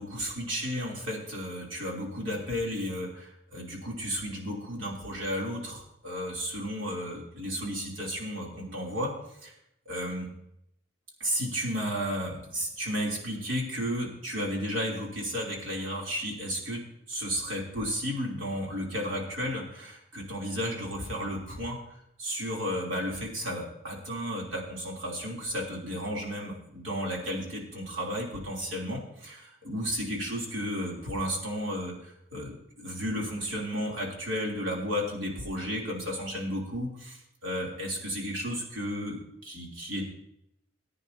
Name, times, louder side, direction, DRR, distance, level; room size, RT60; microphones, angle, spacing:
voice 1, 0.0-9.1 9.4-9.5 9.8-10.3 11.2-16.8 17.1-40.0, equal, 80° right, -2 dB, 3.3 m, -33 dB
19.0 x 9.3 x 2.8 m, 0.79 s
head